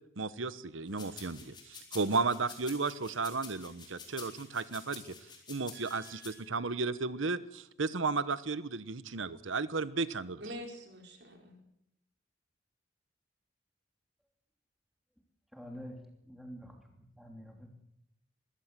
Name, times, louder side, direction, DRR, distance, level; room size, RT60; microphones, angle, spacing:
voice 1, 0.2-5.1 5.5-10.4, right 4 dB, 90° right, 16 dB, 1.1 m, -34 dB
sound 1, 1.0-6.3, left 5 dB, 25° left, 4.0 m, -49 dB
voice 2, 5.7-6.7 10.4-11.6, equal, 60° right, 3 dB, 4.7 m, -47 dB
voice 3, 15.5-16.0 16.2-16.7 17.2-17.7, equal, ahead, 3 dB, 3.1 m, -46 dB
21.5 x 16.0 x 7.6 m, 0.78 s
head